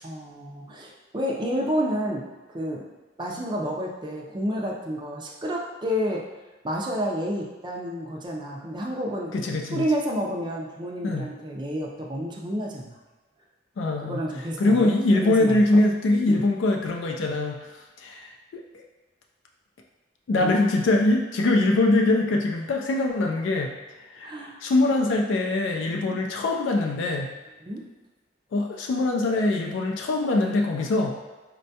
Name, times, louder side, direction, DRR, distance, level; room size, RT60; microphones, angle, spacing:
voice 1, 0.0-2.3 2.5-2.8 3.2-6.2 6.6-9.3 9.7-13.0 14.0-15.8 16.3-16.4 20.4-20.7 24.2-24.6 27.7-27.8, equal, 25° right, -1 dB, 0.4 m, -30 dB
voice 2, 9.3-9.9 11.0-11.3 13.8-14.2 14.6-17.7 18.0-18.6 20.3-23.7 24.1-27.3 28.5-31.2, left 2 dB, 65° left, 1 dB, 0.3 m, -23 dB
4.3 x 2.2 x 2.7 m, 1.2 s
head